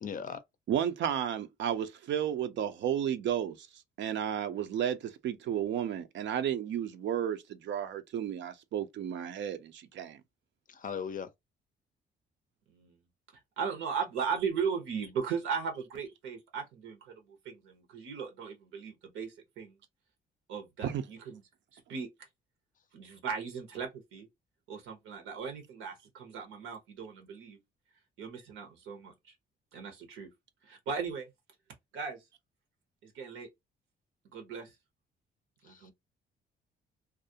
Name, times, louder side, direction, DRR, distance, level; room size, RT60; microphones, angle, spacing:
voice 1, 0.0-0.4 10.7-11.3 35.6-35.9, left 7 dB, 45° left, 0.5 m, -38 dB
voice 2, 0.7-10.2 20.8-21.1, right 9 dB, 65° right, 0.5 m, -33 dB
voice 3, 13.6-19.7 20.5-21.4 21.7-22.1 22.9-24.3 24.7-27.6 28.2-29.1 29.7-30.3 30.7-31.3 31.9-32.2 33.0-33.5 34.3-34.7 35.6-35.9, right 6 dB, 90° right, 0.9 m, -37 dB
2.4 x 2.1 x 2.6 m
cardioid pair, 90°, 20 cm